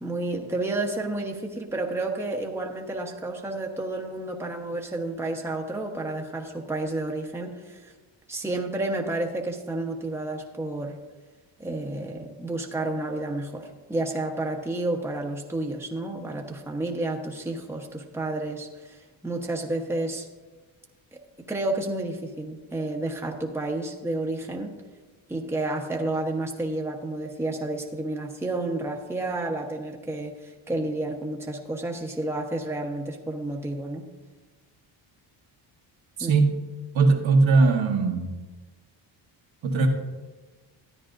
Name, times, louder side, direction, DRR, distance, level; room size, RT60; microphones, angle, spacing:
voice 1, 0.0-7.9 8.3-11.0 11.6-20.3 21.4-24.7 25.3-34.1 36.2-36.3, right 2 dB, 5° right, 1 dB, 1.1 m, -31 dB
voice 2, 36.2-36.6 36.9-38.3 39.6-39.9, right 3 dB, 65° right, 1 dB, 1.5 m, -20 dB
14.0 x 9.4 x 2.6 m, 1.2 s
cardioid pair, 75°, 49 cm